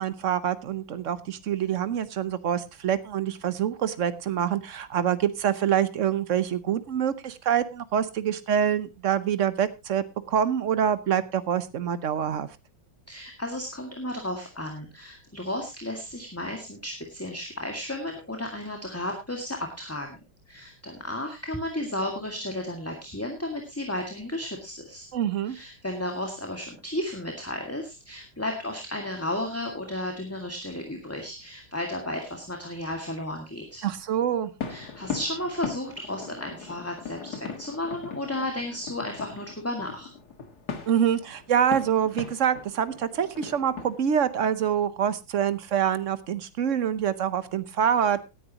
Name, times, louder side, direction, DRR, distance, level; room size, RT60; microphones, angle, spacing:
voice 1, 0.0-12.5 25.1-25.6 33.8-34.5 40.9-48.2, right 9 dB, 55° right, 14 dB, 0.8 m, -26 dB
voice 2, 13.1-20.2 20.5-25.1 25.5-33.8 34.7-40.1, left 1 dB, 5° left, 2 dB, 1.8 m, -33 dB
sound 1, 34.6-44.0, left 6 dB, 50° left, 2.3 m, -39 dB
18.0 x 10.0 x 2.9 m, 0.24 s
omnidirectional pair, 2.2 m